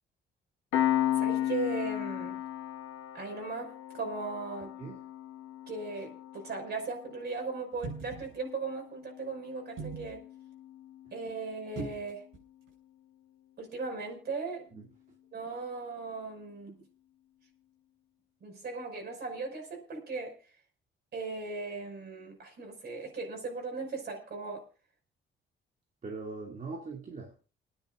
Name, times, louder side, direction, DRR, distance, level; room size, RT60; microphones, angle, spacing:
Piano, 0.7-11.8, left 12 dB, 85° left, 1.8 m, -36 dB
voice 1, 1.1-2.4 3.1-4.8 5.7-10.2 11.1-12.2 13.6-14.7 15.3-16.8 18.4-20.4 21.1-24.7, right 4 dB, 55° right, 5.6 m, -38 dB
sound 1, 7.7-8.4 9.8-10.2 11.8-12.4 12.7-12.8, right 4 dB, 85° right, 6.7 m, -40 dB
voice 2, 26.0-27.5, right 4 dB, 40° right, 2.5 m, -41 dB
30.0 x 10.0 x 2.5 m
cardioid pair, 90°, 20 cm